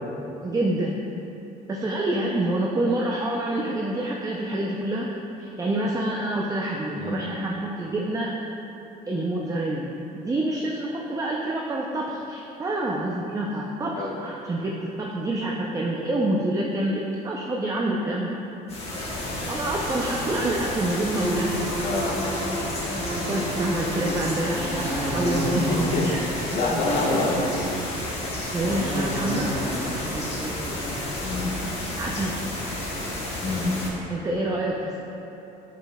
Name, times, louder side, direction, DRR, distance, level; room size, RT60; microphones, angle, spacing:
voice 1, 0.4-1.0 1.7-5.1 5.4-8.3 9.1-9.9 10.1-18.4 19.5-21.5 23.3-25.7 26.0-26.2 28.5-29.5 29.9-31.0 32.0-32.4 34.1-35.0, right 1 dB, 20° right, -2 dB, 0.5 m, -27 dB
voice 2, 6.9-7.2 13.9-14.1 21.8-22.1 25.3-27.5 31.2-31.5 33.4-33.7, left 2 dB, 60° left, -3 dB, 1.2 m, -27 dB
sound 1, 18.7-33.9, equal, 35° left, 1.5 m, -29 dB
8.5 x 5.1 x 2.3 m, 3.0 s
cardioid pair, 110°, 17 cm